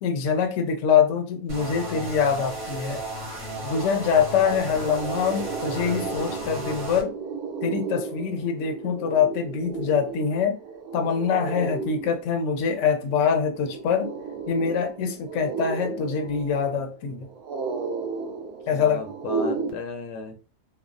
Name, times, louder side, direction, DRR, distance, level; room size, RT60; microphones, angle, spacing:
voice 1, 0.0-3.0 3.6-7.1 7.6-10.6 10.9-14.1 14.5-17.3 18.7-19.1, left 7 dB, 65° left, 5 dB, 0.7 m, -24 dB
sound 1, 1.5-7.0, right 1 dB, 45° right, 1.1 m, -34 dB
sound 2, 3.1-3.2 3.5-19.7, right 4 dB, 75° right, 1.1 m, -34 dB
voice 2, 18.7-20.3, left 5 dB, 85° left, 5 dB, 1.2 m, -35 dB
3.1 x 2.0 x 2.5 m, 0.34 s
omnidirectional pair, 1.7 m